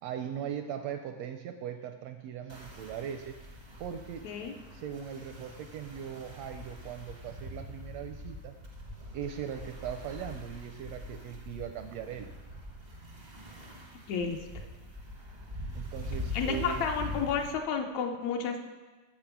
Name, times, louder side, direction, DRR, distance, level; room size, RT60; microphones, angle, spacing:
voice 1, 0.0-3.4 3.8-4.3 4.7-8.5 9.1-12.3 15.7-16.9, right 9 dB, 80° right, 7 dB, 1.5 m, -39 dB
sound 1, 2.5-17.5, left 1 dB, 45° right, 0.5 m, -43 dB
voice 2, 4.2-4.6 14.1-14.4 16.3-18.6, left 6 dB, 75° left, 3 dB, 1.9 m, -31 dB
8.8 x 7.3 x 5.9 m, 1.3 s
omnidirectional pair, 3.3 m